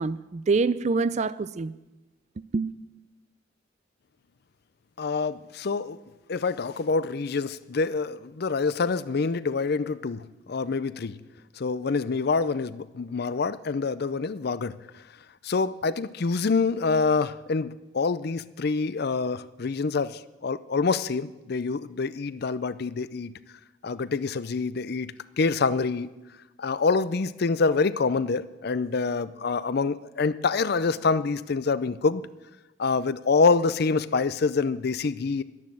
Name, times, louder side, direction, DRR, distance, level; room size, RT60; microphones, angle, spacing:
voice 1, 0.0-1.8 2.4-2.7, right 4 dB, 35° right, 0.4 m, -26 dB
voice 2, 5.0-6.0 6.3-11.2 11.6-14.8 15.4-23.3 23.8-26.1 26.6-32.2 32.8-35.4, left 4 dB, 55° left, 0.5 m, -26 dB
12.0 x 11.0 x 7.6 m
head